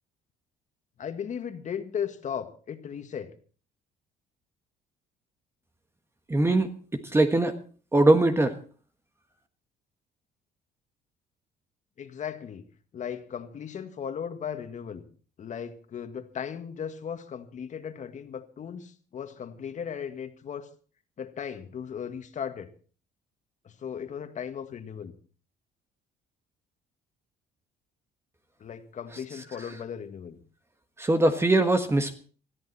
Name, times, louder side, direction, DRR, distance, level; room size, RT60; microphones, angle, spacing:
voice 1, 1.0-3.3 12.0-12.7 12.9-15.0 15.4-20.7 21.2-22.7 23.6-25.1 28.6-30.4, left 8 dB, 45° left, 8 dB, 1.9 m, -36 dB
voice 2, 6.3-6.7 7.1-7.6 7.9-8.5 31.0-32.2, right 2 dB, 15° right, 8 dB, 1.4 m, -21 dB
20.0 x 13.5 x 4.3 m, 0.40 s
cardioid pair, 110°, 17 cm